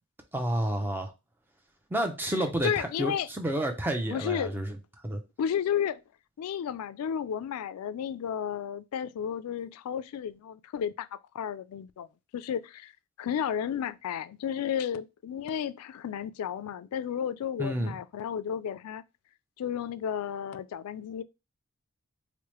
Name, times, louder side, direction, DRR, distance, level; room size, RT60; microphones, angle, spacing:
voice 1, 0.3-1.1 1.9-4.7 5.0-5.2 17.6-18.0, right 1 dB, 10° right, 0.5 m, -30 dB
voice 2, 2.6-3.3 4.1-4.6 5.4-6.0 6.4-11.1 11.3-12.1 12.3-12.9 13.2-19.0 19.6-21.2, left 8 dB, 85° left, 0.3 m, -32 dB
4.6 x 2.1 x 2.9 m
head